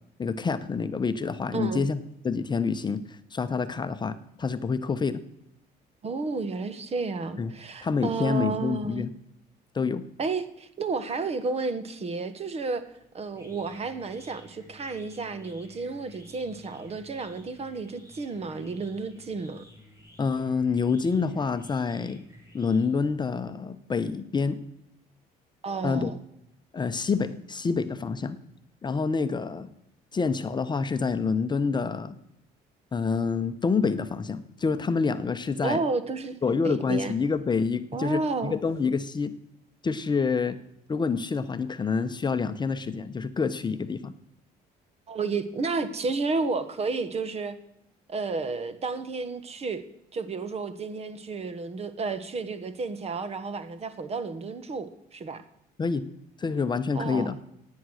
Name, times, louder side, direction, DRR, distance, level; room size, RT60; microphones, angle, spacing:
voice 1, 0.2-2.0 2.2-5.2 7.4-7.5 7.8-9.1 9.7-10.0 20.2-22.2 22.5-24.6 25.8-26.1 26.7-28.4 28.8-29.7 30.1-32.2 32.9-35.8 36.4-39.3 39.8-40.6 40.9-44.1 55.8-56.0 56.4-57.4, left 5 dB, 25° left, 10 dB, 0.8 m, -27 dB
voice 2, 1.5-1.8 6.0-9.0 10.2-12.8 13.1-19.6 25.6-26.2 35.6-37.1 37.9-38.6 45.1-47.5 48.1-49.8 50.1-55.4 56.9-57.3, right 4 dB, 40° right, 12 dB, 1.4 m, -31 dB
sound 1, 12.9-23.2, left 1 dB, 20° right, 4.7 m, -53 dB
16.5 x 9.5 x 6.4 m, 0.79 s
cardioid pair, 110°, 17 cm